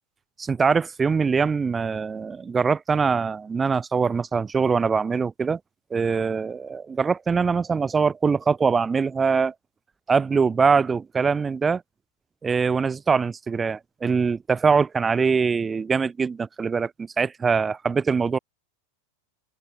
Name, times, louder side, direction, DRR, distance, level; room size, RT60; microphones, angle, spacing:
voice 1, 0.4-5.6 5.9-9.5 10.1-11.8 12.4-18.4, right 5 dB, 20° right, 1.2 m, -23 dB
figure-of-eight pair, 90°, 0 cm